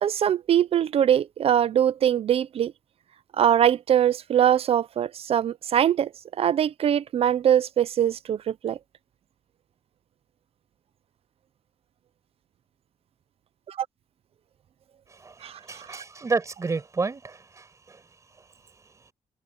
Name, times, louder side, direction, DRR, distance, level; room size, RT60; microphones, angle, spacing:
voice 1, 0.0-2.7 3.4-6.1 6.4-8.8 13.7-13.9 15.4-15.6 15.9-16.0, right 10 dB, 55° right, 0.7 m, -22 dB
voice 2, 15.6-18.0, right 4 dB, 25° right, 5.3 m, -30 dB
cardioid pair, 145°, 12 cm